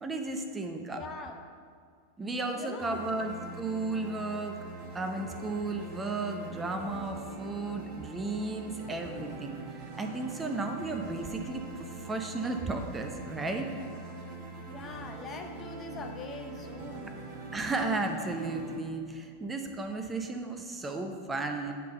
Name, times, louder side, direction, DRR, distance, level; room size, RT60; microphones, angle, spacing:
voice 1, 0.0-1.0 2.2-4.6 4.9-9.6 10.0-13.7 17.5-21.7, right 3 dB, 15° right, 5 dB, 0.7 m, -34 dB
voice 2, 0.9-1.4 2.5-3.1 14.7-17.1, left 3 dB, 25° left, 4 dB, 0.6 m, -42 dB
sound 1, 2.8-18.8, right 2 dB, 40° right, 1.2 m, -43 dB
9.3 x 3.5 x 6.6 m, 2.1 s
figure-of-eight pair, 90°, 0 cm